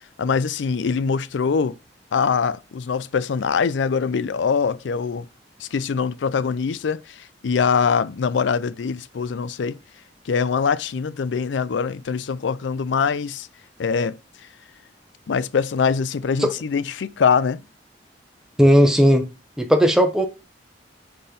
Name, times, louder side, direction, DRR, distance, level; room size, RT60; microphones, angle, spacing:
voice 1, 0.2-1.8 2.1-5.3 5.6-9.8 10.3-13.5 13.8-14.2 15.3-17.6, left 5 dB, 80° left, 0.4 m, -23 dB
voice 2, 18.6-19.3 19.6-20.3, equal, 5° right, 0.8 m, -16 dB
5.5 x 4.2 x 5.2 m
head